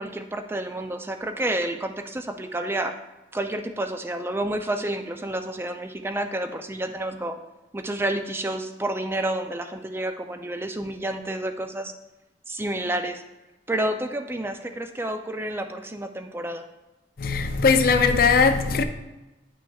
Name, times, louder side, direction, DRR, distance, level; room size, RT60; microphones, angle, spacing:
voice 1, 0.0-2.9 3.3-7.4 7.7-11.9 12.5-13.2 13.7-16.6, right 1 dB, 15° right, 7 dB, 0.4 m, -29 dB
voice 2, 17.2-18.8, left 5 dB, 55° left, 8 dB, 0.5 m, -19 dB
9.5 x 6.0 x 2.3 m, 1.0 s
head